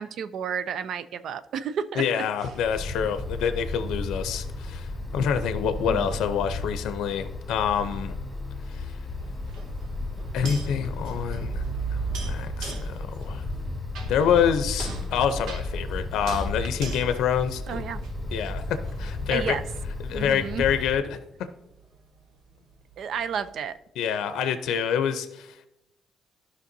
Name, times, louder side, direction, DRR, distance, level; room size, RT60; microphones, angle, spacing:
voice 1, 0.0-2.0 5.9-6.1 17.7-18.0 19.3-19.6 20.1-20.7 23.0-23.8, right 7 dB, 70° right, 13 dB, 0.5 m, -31 dB
voice 2, 2.0-8.1 8.7-8.9 10.3-11.6 12.3-13.4 14.1-17.8 18.3-19.6 20.0-21.5 24.0-25.7, left 8 dB, 85° left, 9 dB, 0.5 m, -27 dB
Wind, 2.5-20.9, left 2 dB, 10° left, 2.3 m, -34 dB
sound 1, 9.2-18.4 18.8-23.7, right 5 dB, 85° right, 1.2 m, -39 dB
13.0 x 5.6 x 2.7 m, 0.88 s
cardioid pair, 90°, 0 cm